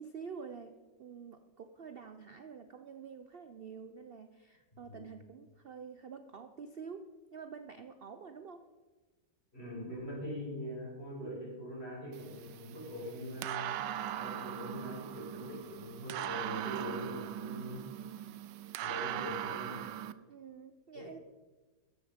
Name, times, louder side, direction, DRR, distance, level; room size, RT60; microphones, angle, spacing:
voice 1, 0.0-8.7 20.3-21.2, right 6 dB, 65° right, 9 dB, 0.5 m, -48 dB
voice 2, 9.5-13.8 14.2-17.9 18.8-19.8 20.9-21.2, equal, 35° left, -4 dB, 6.0 m, -42 dB
sound 1, 12.1-20.1, right 11 dB, 80° right, 1.3 m, -40 dB
14.5 x 12.0 x 5.2 m, 1.3 s
omnidirectional pair, 1.9 m